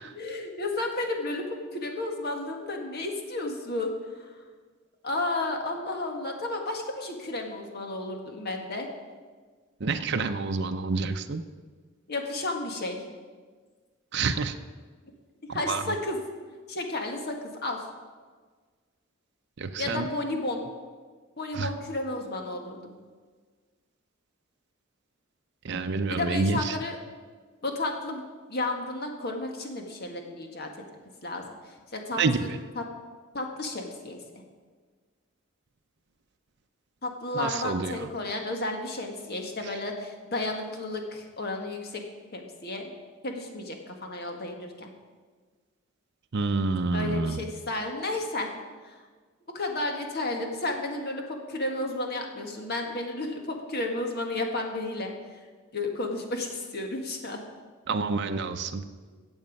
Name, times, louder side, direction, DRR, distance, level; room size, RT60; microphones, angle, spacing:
voice 1, 0.1-1.5 1.7-4.4 5.0-8.9 12.1-13.1 15.5-16.2 16.7-17.9 19.8-20.6 21.4-22.9 26.1-27.0 27.6-28.2 28.5-30.8 31.2-32.8 33.3-34.2 37.0-42.0 42.3-42.9 43.2-44.9 46.9-48.5 48.8-49.0 49.5-55.3 55.7-57.4, left 2 dB, 50° left, 3 dB, 1.6 m, -32 dB
voice 2, 9.8-11.4 14.1-14.6 15.5-15.8 19.6-20.1 21.5-21.7 25.6-26.8 32.2-32.6 37.3-38.1 46.3-47.4 57.9-58.8, right 4 dB, 55° right, 7 dB, 0.6 m, -28 dB
15.0 x 8.0 x 5.3 m, 1.5 s
head